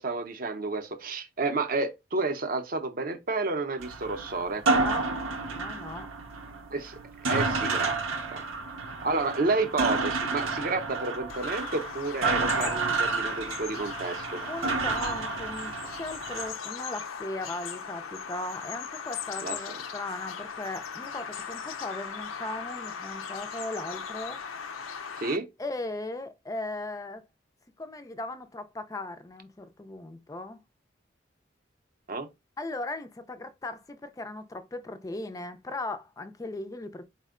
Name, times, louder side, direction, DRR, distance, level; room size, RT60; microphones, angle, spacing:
voice 1, 0.0-4.6 6.7-6.9 7.3-8.0 8.3-8.5 9.0-14.4 19.4-19.8 25.2-25.5 32.1-32.3, right 3 dB, 45° right, 0.6 m, -30 dB
sound 1, 3.8-16.5, right 3 dB, 85° right, 0.7 m, -30 dB
voice 2, 4.7-5.1 5.5-6.1 12.6-12.8 14.4-24.4 25.6-27.2 27.8-30.6 32.6-37.1, left 2 dB, 15° left, 0.4 m, -38 dB
Bird vocalization bird call bird song, 11.3-25.4, left 6 dB, 85° left, 0.5 m, -39 dB
4.3 x 2.1 x 3.6 m
head